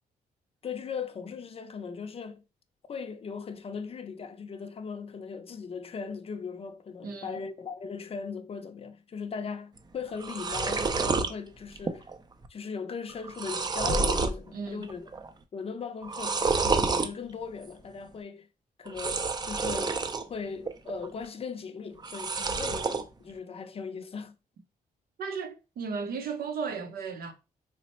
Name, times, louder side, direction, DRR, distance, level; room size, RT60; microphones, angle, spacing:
voice 1, 0.6-2.4 2.9-12.1 12.5-15.1 15.5-18.5 18.8-20.0 20.3-24.3, left 5 dB, 40° left, 0.5 m, -38 dB
voice 2, 7.0-7.4 14.5-14.9 25.2-27.3, right 5 dB, 80° right, 0.7 m, -35 dB
sound 1, 9.8-9.9 10.1-11.3 11.8-12.2 12.4-12.5 13.1-14.4 14.8-15.3 16.0-17.1 18.9-20.2 20.6-21.3 22.0-23.0, right 4 dB, 25° right, 0.4 m, -29 dB
3.2 x 2.0 x 4.2 m
cardioid pair, 95°, 15 cm